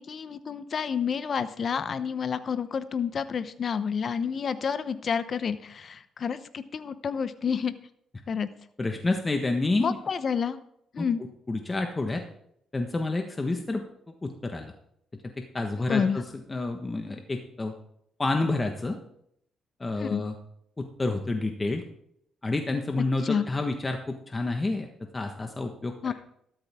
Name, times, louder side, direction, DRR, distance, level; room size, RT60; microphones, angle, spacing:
voice 1, 0.0-7.7 8.3-8.5 9.8-10.6 10.9-11.2 15.9-16.2 20.0-20.2 23.2-23.4 26.0-26.1, left 6 dB, 50° left, 12 dB, 0.9 m, -29 dB
voice 2, 8.8-10.0 11.0-11.1 11.5-12.2 12.7-13.8 14.2-14.7 15.4-16.2 16.5-17.7 18.2-19.0 19.8-20.3 20.8-21.8 22.4-24.9 25.1-26.1, left 2 dB, 25° left, 4 dB, 1.4 m, -29 dB
13.5 x 12.5 x 3.7 m, 0.71 s
cardioid pair, 90°, 0 cm